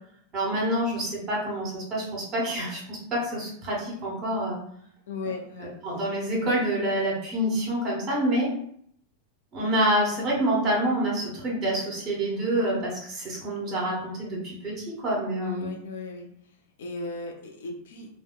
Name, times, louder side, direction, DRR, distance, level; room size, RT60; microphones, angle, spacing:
voice 1, 0.3-4.6 5.8-8.5 9.5-15.7, right 1 dB, 30° right, -4 dB, 1.2 m, -27 dB
voice 2, 5.1-5.8 15.4-16.3 16.8-18.1, left 3 dB, 60° left, 2 dB, 0.4 m, -36 dB
2.6 x 2.1 x 2.4 m, 0.67 s
figure-of-eight pair, 90°, 0 cm